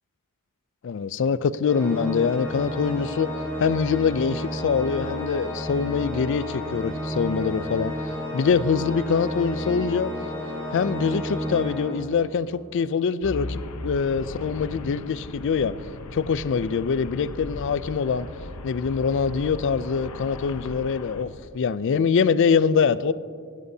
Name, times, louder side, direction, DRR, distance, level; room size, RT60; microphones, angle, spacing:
voice 1, 0.8-3.3 3.6-10.1 10.7-15.7 16.1-18.3 18.6-23.1, left 6 dB, 55° left, 0.4 m, -24 dB
Organ, 1.6-12.5, equal, 5° left, 2.2 m, -31 dB
Traffic noise roadway noise, 13.2-21.2, left 2 dB, 80° left, 0.8 m, -37 dB
18.0 x 13.0 x 2.7 m
head